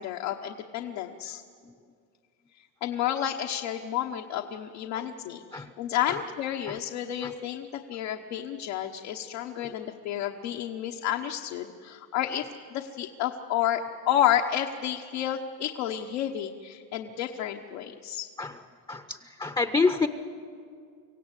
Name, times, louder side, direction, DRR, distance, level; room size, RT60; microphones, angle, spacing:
voice 1, 0.0-1.4 2.8-18.3, left 11 dB, 80° left, 2 dB, 1.2 m, -30 dB
voice 2, 18.9-20.1, left 4 dB, 10° left, 9 dB, 0.6 m, -28 dB
25.5 x 16.5 x 8.3 m, 2.2 s
supercardioid pair, 110°, 47 cm